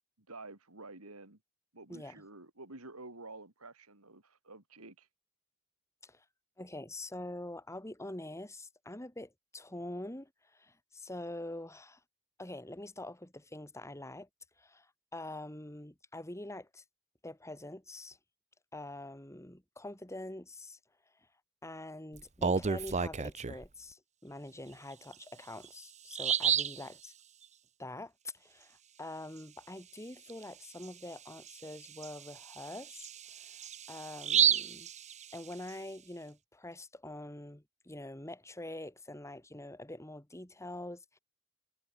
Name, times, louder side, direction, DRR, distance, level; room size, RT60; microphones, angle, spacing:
voice 1, 0.2-1.4 1.7-5.1, right 2 dB, 90° right, 4.8 m, -50 dB
voice 2, 6.6-12.0 12.4-14.3 14.6-16.8 17.2-18.2 18.7-20.8 21.6-27.1 27.8-33.1 33.4-33.5 33.9-34.9 35.3-41.2, left 1 dB, 15° left, 2.8 m, -45 dB
Bird vocalization bird call bird song, 22.2-23.7 25.1-25.2 25.7-25.8 26.1-26.8 30.3-30.4 30.8-30.9 31.5-35.7, right 7 dB, 35° right, 0.8 m, -31 dB
head